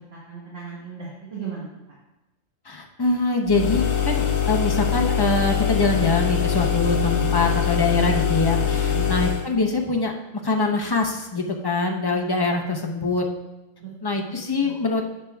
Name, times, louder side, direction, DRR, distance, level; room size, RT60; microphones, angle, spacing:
voice 1, 0.0-1.7 8.8-9.1 13.8-13.9 14.2-14.7, right 5 dB, 50° right, -6 dB, 1.7 m, -36 dB
voice 2, 2.7-10.1 10.4-13.3 14.0-15.0, left 3 dB, 30° left, 2 dB, 0.4 m, -23 dB
sound 1, 3.5-9.5, left 8 dB, 80° left, 1.2 m, -23 dB
10.5 x 7.3 x 2.3 m, 0.99 s
omnidirectional pair, 1.3 m